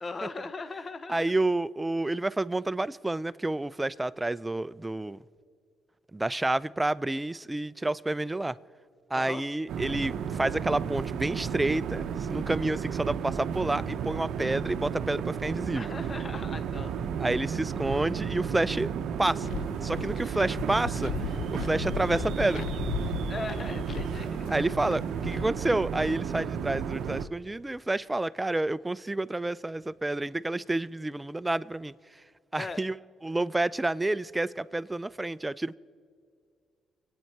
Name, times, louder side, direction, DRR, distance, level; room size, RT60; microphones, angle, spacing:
voice 1, 0.0-1.3 9.1-9.4 15.8-17.1 23.3-24.4 32.6-32.8, left 3 dB, 35° left, 12 dB, 0.7 m, -38 dB
voice 2, 1.1-5.2 6.1-8.6 9.1-15.9 17.2-18.9 19.2-19.5 19.8-22.7 24.5-31.9 32.5-33.0 33.2-35.8, right 2 dB, 15° right, 17 dB, 0.4 m, -29 dB
sound 1, 9.7-27.3, right 7 dB, 75° right, 0.6 m, -33 dB
sound 2, 19.4-25.5, left 9 dB, 85° left, 0.5 m, -37 dB
23.5 x 9.0 x 4.6 m, 2.3 s
cardioid pair, 90°, 0 cm